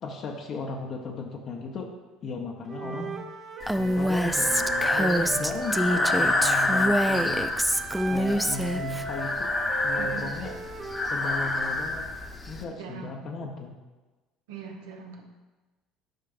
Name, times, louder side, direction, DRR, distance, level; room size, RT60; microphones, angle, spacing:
voice 1, 0.0-1.9 2.2-3.1 3.7-7.5 8.1-9.5 9.8-10.5 11.1-12.0 12.5-13.7, left 3 dB, 45° left, 0 dB, 0.8 m, -36 dB
Wind instrument woodwind instrument, 2.7-6.8 7.7-11.1, right 3 dB, 40° right, 0.8 m, -37 dB
voice 2, 2.8-3.2 10.0-10.3 12.8-13.2 14.5-15.2, right 6 dB, 70° right, 2 dB, 1.0 m, -40 dB
Breathing, 3.6-12.6, left 2 dB, 25° left, 1.0 m, -28 dB
Female speech woman speaking, 3.7-9.0, equal, 5° right, 0.4 m, -26 dB
11.5 x 5.6 x 2.6 m, 1.2 s
figure-of-eight pair, 60°, 0 cm